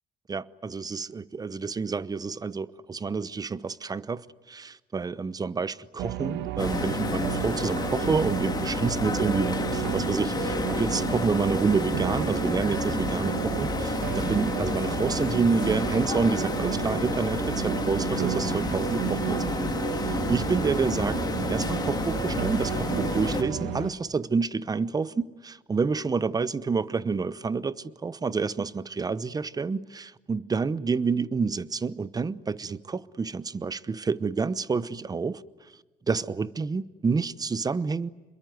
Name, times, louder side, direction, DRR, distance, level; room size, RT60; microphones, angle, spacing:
voice 1, 0.3-21.2 21.5-35.4 36.1-38.1, right 4 dB, 20° right, 0.9 m, -28 dB
sound 1, 6.0-23.9, right 12 dB, 85° right, 1.4 m, -32 dB
sound 2, 6.6-23.4, left 4 dB, 25° left, 2.7 m, -30 dB
sound 3, 18.4-23.9, left 3 dB, 5° left, 6.0 m, -41 dB
27.5 x 22.0 x 9.3 m
cardioid pair, 110°, 17 cm